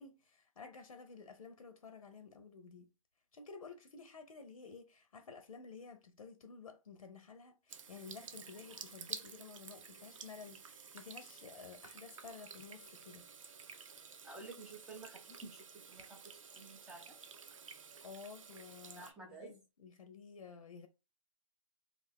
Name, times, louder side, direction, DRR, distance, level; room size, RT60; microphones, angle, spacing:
voice 1, 0.0-2.9 3.3-13.3 18.0-20.9, left 5 dB, 80° left, 0.7 m, -53 dB
Water tap faucet / Sink (filling or washing), 7.7-19.1, right 6 dB, 65° right, 0.6 m, -52 dB
voice 2, 14.2-17.1 19.0-19.5, right 3 dB, 5° right, 0.3 m, -52 dB
2.5 x 2.5 x 3.4 m
hypercardioid pair, 150°, 18 cm